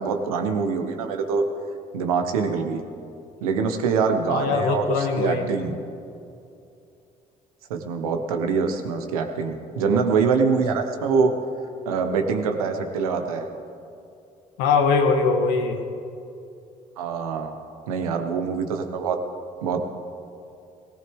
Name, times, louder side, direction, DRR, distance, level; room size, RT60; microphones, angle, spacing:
voice 1, 0.0-1.4 1.9-2.8 3.4-5.8 7.7-11.3 11.8-13.5 17.0-17.6 17.9-19.2 19.6-20.1, right 5 dB, 85° right, 6 dB, 1.1 m, -24 dB
voice 2, 4.3-5.5 14.6-15.8, left 4 dB, 70° left, 5 dB, 1.4 m, -21 dB
18.0 x 18.0 x 3.6 m, 2.6 s
hypercardioid pair, 50°, 18 cm